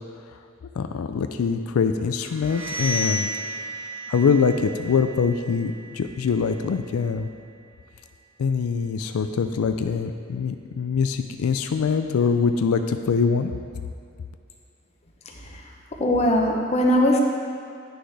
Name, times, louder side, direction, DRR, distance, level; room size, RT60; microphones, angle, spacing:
voice 1, 0.8-3.3 4.1-7.3 8.4-13.5, left 5 dB, 90° left, 7 dB, 0.4 m, -23 dB
sound 1, 2.2-7.9, equal, 70° right, 0.9 m, -34 dB
voice 2, 15.2-15.7 16.0-17.2, left 1 dB, 30° left, 0 dB, 0.7 m, -21 dB
9.5 x 6.2 x 3.4 m, 2.4 s
head